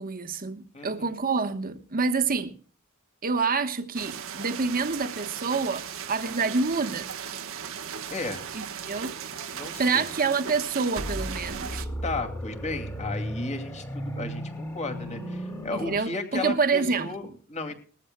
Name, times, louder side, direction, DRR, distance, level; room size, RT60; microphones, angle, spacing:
voice 1, 0.0-2.5 3.2-7.1 8.5-9.2 9.8-11.9 15.8-17.3, right 4 dB, 40° right, 1.1 m, -27 dB
voice 2, 0.7-1.0 8.1-8.4 9.5-10.1 12.0-17.7, left 3 dB, 30° left, 2.5 m, -34 dB
sound 1, 3.9-11.8, right 8 dB, 65° right, 1.1 m, -37 dB
sound 2, 11.0-16.0, equal, 15° left, 2.2 m, -35 dB
20.5 x 14.5 x 2.2 m
head